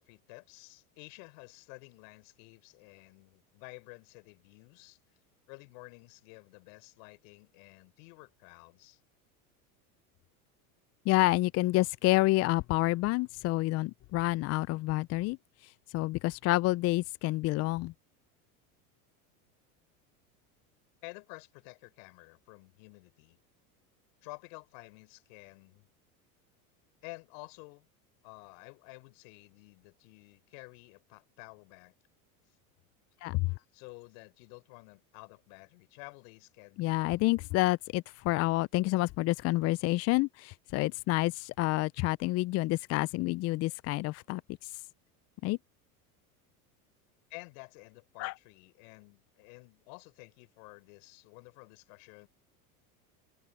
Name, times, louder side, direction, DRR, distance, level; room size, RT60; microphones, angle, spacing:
voice 1, 0.0-5.0 5.5-9.0 21.0-23.4 24.2-25.9 27.0-27.9 28.2-31.9 33.7-37.3 47.3-52.3, left 34 dB, 65° left, 4.0 m, -51 dB
voice 2, 11.1-15.4 15.9-17.9 33.2-33.5 36.8-44.7 45.4-45.6 48.2-48.3, left 19 dB, 35° left, 0.4 m, -28 dB
hypercardioid pair, 100°, 44 cm